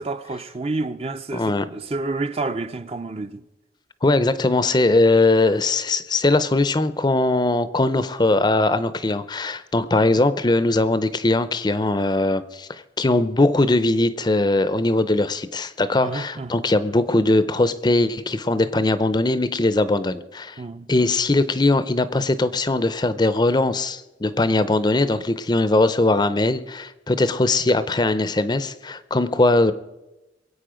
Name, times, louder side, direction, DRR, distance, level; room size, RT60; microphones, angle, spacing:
voice 1, 0.0-3.4 16.0-16.6 20.6-20.9, right 3 dB, 30° right, 0.5 m, -29 dB
voice 2, 1.3-1.7 4.0-20.6 20.9-29.7, left 2 dB, 25° left, 0.5 m, -20 dB
23.5 x 8.4 x 5.1 m
head